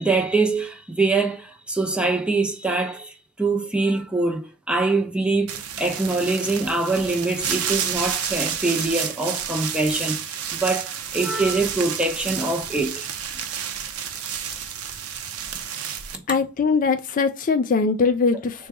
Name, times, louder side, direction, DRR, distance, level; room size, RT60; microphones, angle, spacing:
voice 1, 0.0-13.0, right 3 dB, 5° right, 0.6 m, -24 dB
sound 1, 5.5-16.2, right 8 dB, 85° right, 0.7 m, -30 dB
voice 2, 16.3-18.7, left 4 dB, 40° left, 0.4 m, -21 dB
3.9 x 2.3 x 4.5 m
head